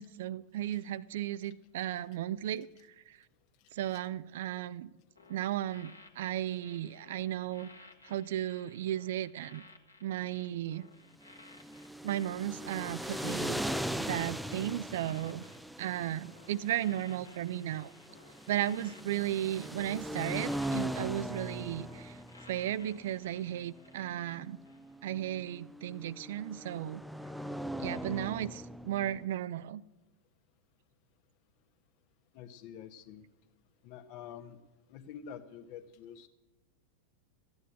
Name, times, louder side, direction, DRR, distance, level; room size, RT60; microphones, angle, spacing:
voice 1, 0.0-2.7 3.1-3.2 3.7-4.9 5.3-7.7 8.1-9.6 10.0-10.9 12.0-13.6 14.0-15.4 15.8-17.9 18.5-22.2 22.5-24.6 25.0-27.0 27.8-29.8, right 12 dB, 55° right, 18 dB, 0.4 m, -35 dB
sound 1, 5.2-24.3 24.6-24.9, left 3 dB, 80° left, 1.5 m, -58 dB
sound 2, 11.3-29.2, equal, ahead, 0.5 m, -40 dB
voice 2, 32.3-33.2 33.8-34.6 34.9-36.3, left 8 dB, 45° left, 9 dB, 1.2 m, -47 dB
14.0 x 9.6 x 8.1 m, 1.1 s
figure-of-eight pair, 90°, 0 cm